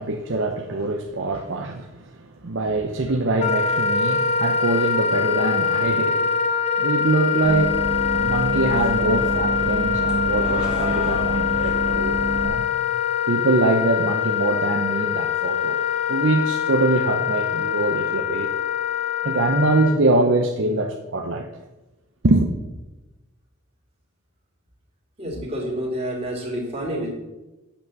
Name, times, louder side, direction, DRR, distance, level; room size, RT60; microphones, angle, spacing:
voice 1, 0.0-6.3 6.8-12.7 13.3-18.5 19.2-21.5 22.2-22.5, right 2 dB, 60° right, 0.7 m, -23 dB
Wind instrument woodwind instrument, 3.4-20.0, left 7 dB, 30° left, 0.5 m, -23 dB
Bus, 7.4-12.5, right 2 dB, 5° right, 1.7 m, -28 dB
voice 2, 25.2-27.1, equal, 30° right, 2.8 m, -28 dB
8.3 x 6.1 x 7.2 m
head